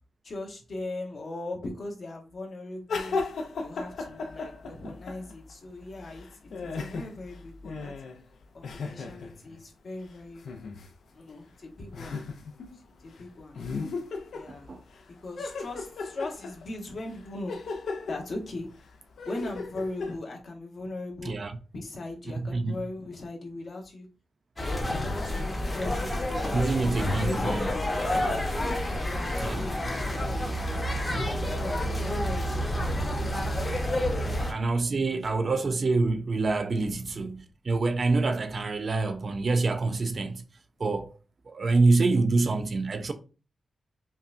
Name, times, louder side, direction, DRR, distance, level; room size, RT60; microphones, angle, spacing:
voice 1, 0.2-3.2 3.6-7.9 8.5-10.4 11.1-12.2 12.7-13.6 14.3-14.7 15.2-17.5 18.1-18.7 19.2-21.3 21.7-24.1 24.6-26.9 27.2-28.4 29.3-33.2 34.1-35.5 36.8-37.3, left 2 dB, 45° left, 1.0 m, -39 dB
sound 1, 2.9-5.5 5.8-9.6 10.4-10.9 11.3-11.4 11.9-12.8 13.1-13.2 13.5-15.0 15.4-20.2, left 4 dB, 65° left, 0.5 m, -36 dB
voice 2, 14.5-14.8 21.2-21.5 22.4-22.8 26.5-27.7 29.4-29.7 34.4-40.4 40.8-41.1 41.5-43.1, right 3 dB, 35° right, 0.3 m, -26 dB
sound 2, 24.6-34.5, left 1 dB, 20° left, 0.8 m, -29 dB
5.4 x 2.2 x 2.5 m
wide cardioid pair, 155°, 0 cm